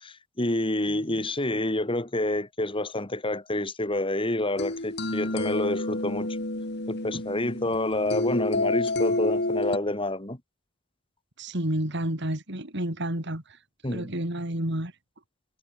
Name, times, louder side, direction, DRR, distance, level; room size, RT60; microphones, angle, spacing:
voice 1, 0.0-6.4 6.9-10.4 13.8-14.1, left 1 dB, 25° left, 2.9 m, -28 dB
sound 1, 4.6-9.8, left 2 dB, 55° left, 2.9 m, -29 dB
voice 2, 11.4-13.4 13.9-14.9, right 1 dB, 60° right, 4.3 m, -30 dB
head